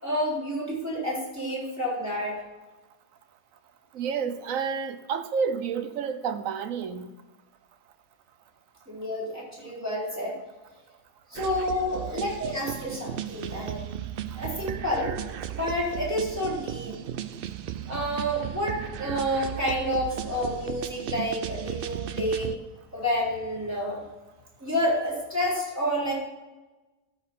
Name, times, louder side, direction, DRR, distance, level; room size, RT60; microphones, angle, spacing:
voice 1, 0.0-2.4 8.9-10.4 11.3-13.8 14.3-15.2 15.5-17.0 17.9-22.6 22.9-24.0 24.6-26.1, equal, 10° right, -6 dB, 3.7 m, -29 dB
voice 2, 3.9-7.1, right 6 dB, 65° right, 11 dB, 1.1 m, -30 dB
sound 1, 11.3-22.6, right 10 dB, 85° right, 0.4 m, -35 dB
13.0 x 5.5 x 5.3 m, 1.2 s
omnidirectional pair, 1.6 m